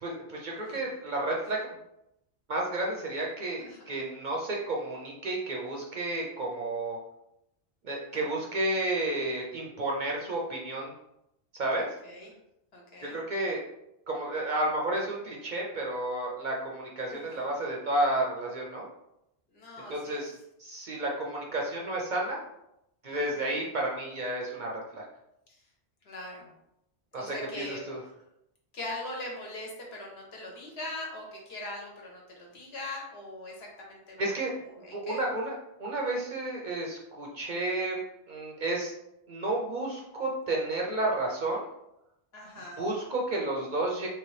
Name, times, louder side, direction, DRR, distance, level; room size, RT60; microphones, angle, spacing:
voice 1, 0.0-1.7 2.5-7.0 7.8-10.9 11.5-11.9 13.0-13.6 14.1-18.9 19.9-20.3 20.6-22.4 23.0-25.0 27.1-28.0 34.2-34.5 34.9-38.0 38.3-38.9 39.3-41.7 42.8-44.1, right 2 dB, 55° right, -2 dB, 0.6 m, -31 dB
voice 2, 3.6-4.0 8.1-8.5 12.0-12.3 12.7-13.2 17.1-17.5 19.5-20.2 23.1-23.6 26.0-26.5 27.1-27.8 28.7-34.2 34.8-35.2 42.3-42.8, left 2 dB, 65° left, -1 dB, 1.1 m, -41 dB
3.0 x 2.9 x 3.1 m, 0.83 s
omnidirectional pair, 1.2 m